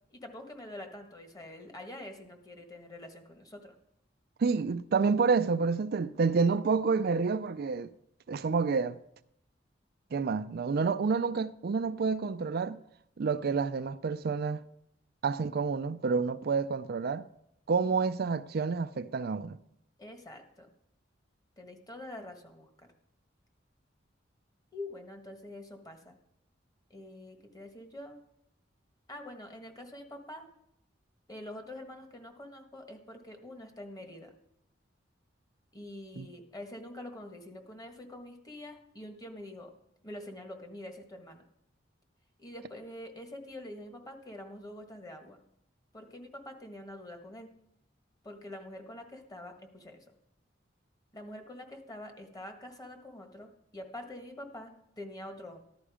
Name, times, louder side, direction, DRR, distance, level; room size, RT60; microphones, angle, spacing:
voice 1, 0.1-3.7 20.0-20.7 21.6-22.9 24.7-26.1 26.9-28.2 29.1-30.5 31.3-34.3 35.7-39.7 40.0-41.4 42.4-45.4 45.9-47.5 48.2-50.0 51.1-55.6, left 1 dB, 20° left, 1.6 m, -45 dB
voice 2, 4.4-7.9 8.3-9.0 10.1-12.8 13.2-14.6 15.2-17.3 17.7-19.6 36.2-36.3, right 5 dB, 55° right, 0.4 m, -29 dB
15.0 x 11.5 x 4.9 m
head